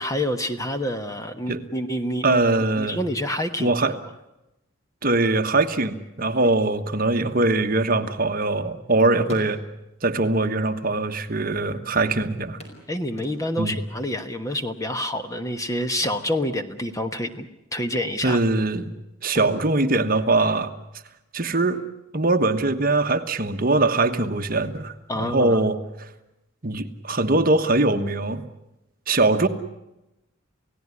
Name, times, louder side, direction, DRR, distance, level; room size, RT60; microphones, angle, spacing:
voice 1, 0.0-2.4 2.8-3.8 12.9-17.5 17.7-18.4 25.1-25.6, left 1 dB, 15° left, 8 dB, 1.2 m, -27 dB
voice 2, 2.2-3.0 3.6-4.0 5.0-9.6 10.0-12.6 13.6-13.8 18.2-18.9 19.2-20.7 21.3-21.8 22.1-24.9 25.2-26.1 26.6-28.4 29.1-29.5, right 2 dB, 45° right, 8 dB, 1.3 m, -22 dB
sound 1, 7.9-8.9 9.2-10.0 10.9-11.0 11.2-11.3 12.6-13.8 15.8-17.2 17.4-17.7 18.2-18.8 19.2-21.0 23.0-23.1 23.5-23.6, equal, 35° left, 5.6 m, -44 dB
29.0 x 17.0 x 9.8 m, 0.94 s
head